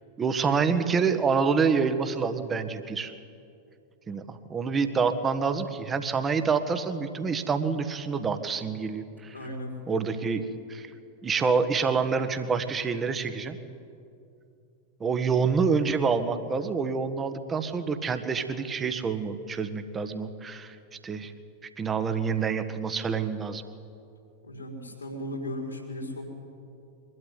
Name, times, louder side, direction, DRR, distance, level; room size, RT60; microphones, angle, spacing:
voice 1, 0.2-3.1 4.1-9.3 9.9-10.4 10.7-10.9 11.2-13.6 15.0-20.7 21.0-21.3 21.8-23.6, right 5 dB, 20° right, 9 dB, 1.5 m, -27 dB
voice 2, 9.3-9.7 24.4-26.2, left 1 dB, 80° left, 1 dB, 4.8 m, -36 dB
23.0 x 12.5 x 9.7 m, 2.5 s
figure-of-eight pair, 90°, 0 cm